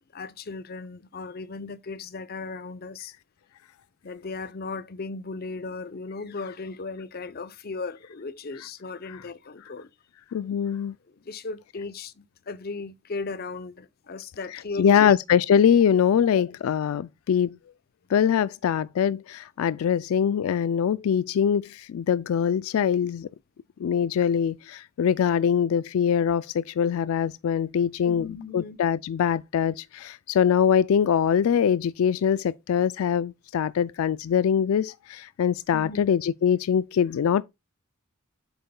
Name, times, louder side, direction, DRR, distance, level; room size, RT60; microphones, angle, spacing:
voice 1, 0.1-3.1 4.0-9.9 11.1-15.2 28.0-28.8 35.7-36.1, left 3 dB, 45° left, 0.6 m, -36 dB
voice 2, 10.3-11.0 14.8-17.6 18.1-23.3 23.8-37.4, left 8 dB, 85° left, 0.3 m, -23 dB
8.2 x 6.5 x 2.2 m
head